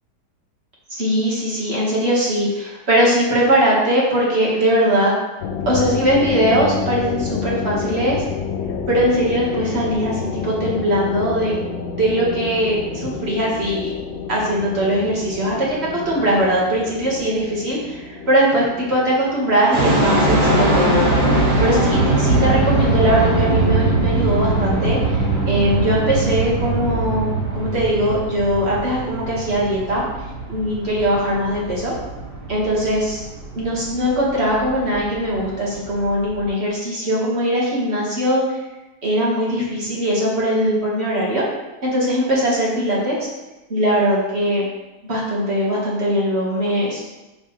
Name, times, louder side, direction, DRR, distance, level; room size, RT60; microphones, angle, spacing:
voice 1, 0.9-5.1 5.6-8.2 8.9-11.5 11.9-13.9 14.3-15.8 16.0-30.0 30.5-31.9 32.5-33.2 33.5-38.6 39.0-41.4 41.8-43.2 43.7-44.7 45.0-47.0, equal, 40° right, -5 dB, 1.8 m, -20 dB
sound 1, 5.4-22.8, left 6 dB, 65° left, 1.0 m, -30 dB
sound 2, 19.7-36.5, right 2 dB, 75° right, 2.3 m, -21 dB
6.3 x 6.0 x 3.2 m, 1.0 s
omnidirectional pair, 1.8 m